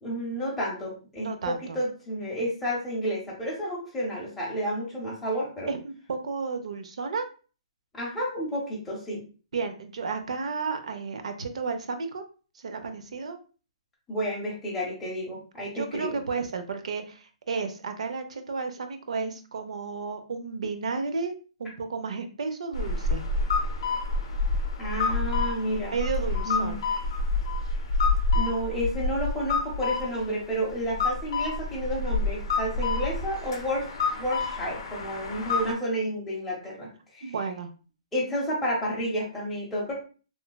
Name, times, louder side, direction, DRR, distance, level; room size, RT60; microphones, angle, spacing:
voice 1, 0.0-5.7 7.9-9.2 14.1-16.2 24.8-25.9 26.4-26.8 28.3-33.9 34.2-37.2 38.1-39.9, equal, 5° left, -6 dB, 0.7 m, -31 dB
voice 2, 1.2-1.8 5.7-7.3 9.5-12.2 12.6-13.4 15.7-21.3 21.6-23.2 25.9-26.8 37.2-37.7, right 4 dB, 65° right, 7 dB, 0.5 m, -32 dB
sound 1, 22.7-35.7, left 3 dB, 45° left, 0.6 m, -28 dB
3.1 x 2.1 x 2.2 m, 0.36 s
hypercardioid pair, 175°, 4 cm